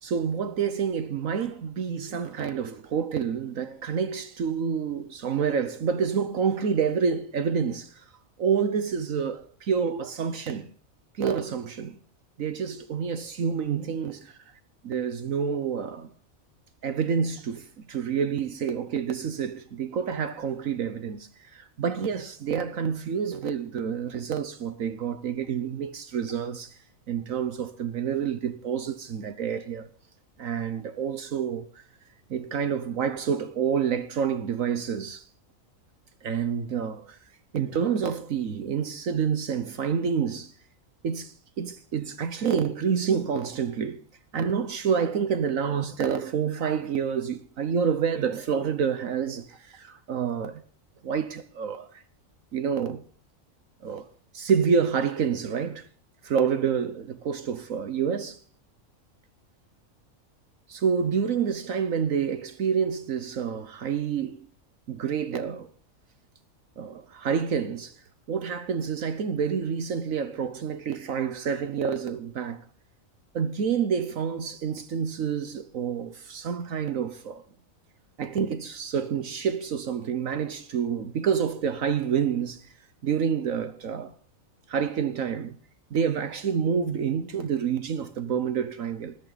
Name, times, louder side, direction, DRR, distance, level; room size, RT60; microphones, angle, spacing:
voice 1, 0.0-8.1 8.4-10.7 11.1-12.0 12.4-14.4 14.8-16.1 16.8-26.8 27.1-29.9 30.4-31.8 32.3-35.3 36.2-37.2 37.5-40.5 41.0-44.0 44.3-50.6 51.0-52.0 52.5-53.0 53.8-54.0 54.3-55.9 56.2-58.4 60.7-64.5 64.9-65.7 66.8-68.0 68.3-72.6 73.3-77.4 78.2-82.7 83.0-84.1 84.7-85.6 85.9-89.2, right 7 dB, 75° right, 1.5 m, -28 dB
20.5 x 14.0 x 4.1 m
omnidirectional pair, 1.4 m